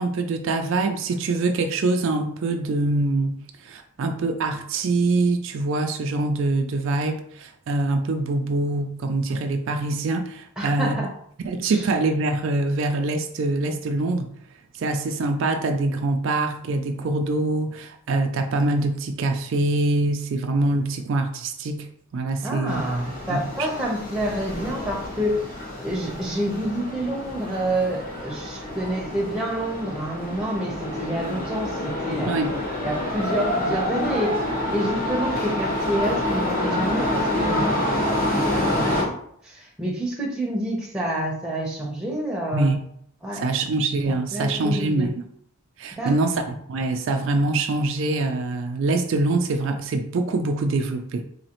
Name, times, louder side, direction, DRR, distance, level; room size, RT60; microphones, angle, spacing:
voice 1, 0.0-11.0 11.4-14.3 14.8-21.9 22.1-22.8 23.3-23.4 32.3-32.5 42.5-42.8 43.3-45.1 45.8-51.2, right 2 dB, 60° right, 5 dB, 0.3 m, -24 dB
voice 2, 10.6-11.1 11.7-11.8 22.4-25.5 25.8-32.3 32.8-34.4 34.7-38.0 38.3-42.7 43.2-43.5 44.1-45.1 46.0-46.5, right 1 dB, 5° right, -2 dB, 0.7 m, -28 dB
sound 1, 22.7-39.0, left 1 dB, 40° left, 0.9 m, -27 dB
4.1 x 2.8 x 2.9 m, 0.66 s
head